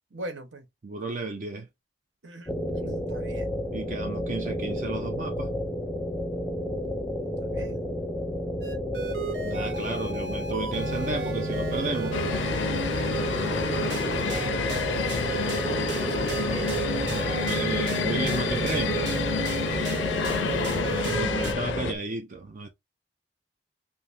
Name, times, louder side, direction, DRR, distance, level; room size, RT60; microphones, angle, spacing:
voice 1, 0.0-0.7 2.2-3.5 7.2-7.9 14.2-16.8 18.4-18.5 18.9-19.0, right 2 dB, 85° right, 1.2 m, -41 dB
voice 2, 0.8-1.7 3.7-5.5 9.4-12.2 17.1-19.2 21.1-22.7, right 3 dB, 45° right, 0.5 m, -33 dB
sound 1, 2.5-22.0, left 1 dB, 5° left, 0.6 m, -31 dB
sound 2, 8.6-21.5, right 4 dB, 70° right, 0.8 m, -33 dB
sound 3, 12.1-21.9, left 7 dB, 80° left, 0.4 m, -30 dB
5.2 x 2.1 x 2.7 m
head